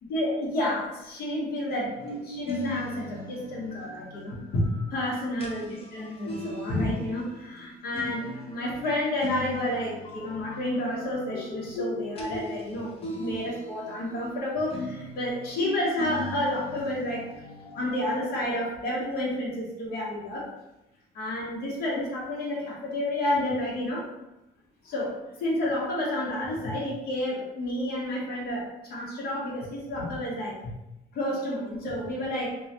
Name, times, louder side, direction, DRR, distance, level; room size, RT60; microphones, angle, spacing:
voice 1, 0.1-17.2 17.7-20.5 21.1-24.1 24.8-30.7 31.1-32.6, left 1 dB, 65° left, -5 dB, 1.0 m, -30 dB
sound 1, 1.9-14.3 14.6-18.2, left 1 dB, 35° left, 0.6 m, -38 dB
3.1 x 2.3 x 2.8 m, 0.93 s
cardioid pair, 110°, 17 cm